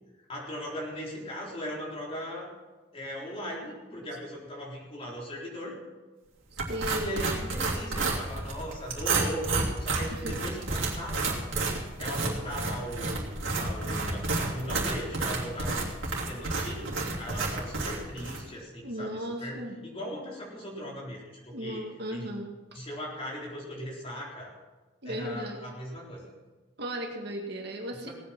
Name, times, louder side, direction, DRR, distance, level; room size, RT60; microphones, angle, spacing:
voice 1, 0.3-2.5 2.9-5.8 7.0-11.4 12.0-13.3 13.6-21.2 21.4-21.8 22.1-22.3 22.7-24.5 25.1-26.3 28.0-28.1, equal, 30° left, -4 dB, 4.0 m, -38 dB
voice 2, 6.5-7.3 10.1-10.3 18.8-19.8 21.5-22.5 25.0-25.6 26.8-28.1, equal, 55° right, 1 dB, 1.9 m, -36 dB
sound 1, 6.6-18.4, right 3 dB, 90° right, 3.0 m, -31 dB
18.5 x 8.6 x 5.9 m, 1.3 s
head